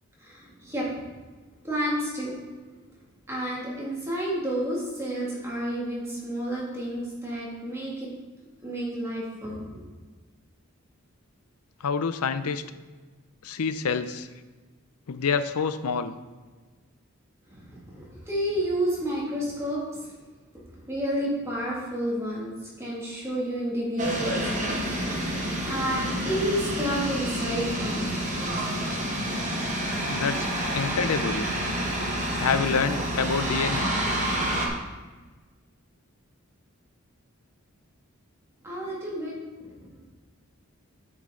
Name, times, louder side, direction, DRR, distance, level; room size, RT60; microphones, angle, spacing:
voice 1, 0.2-1.0 1.6-2.3 3.3-8.1 8.6-9.8 17.9-20.0 20.7-24.8 25.6-28.1 38.6-39.4, equal, 10° right, -5 dB, 2.2 m, -30 dB
voice 2, 11.8-12.6 13.4-14.3 15.1-16.1 30.1-30.5 30.7-31.5 32.4-33.9, left 5 dB, 85° left, 12 dB, 0.6 m, -27 dB
sound 1, 24.0-34.7, right 1 dB, 35° right, 1.2 m, -28 dB
9.2 x 5.9 x 3.8 m, 1.3 s
head